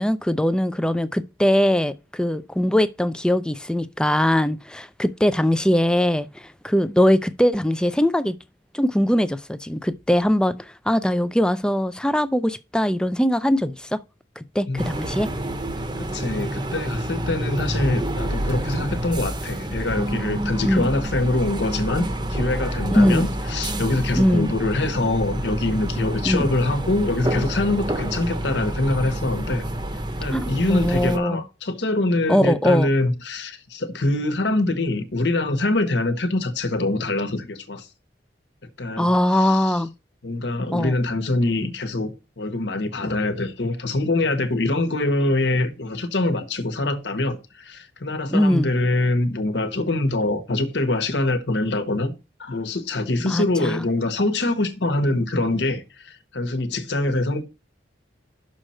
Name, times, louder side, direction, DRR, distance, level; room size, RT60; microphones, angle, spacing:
voice 1, 0.0-8.4 8.7-14.0 14.4-15.3 20.6-20.9 22.9-23.3 24.1-24.5 26.2-26.5 30.3-31.4 32.3-32.9 39.0-39.9 40.7-40.9 48.3-48.7 53.2-53.8, equal, 5° left, 0.5 m, -21 dB
sound 1, 14.8-31.2, right 1 dB, 25° right, 0.9 m, -28 dB
voice 2, 16.0-29.6 30.2-37.9 38.8-39.1 39.3-39.7 40.2-42.1 42.4-52.1 52.4-57.4, left 2 dB, 75° left, 1.2 m, -24 dB
6.4 x 4.3 x 6.3 m
head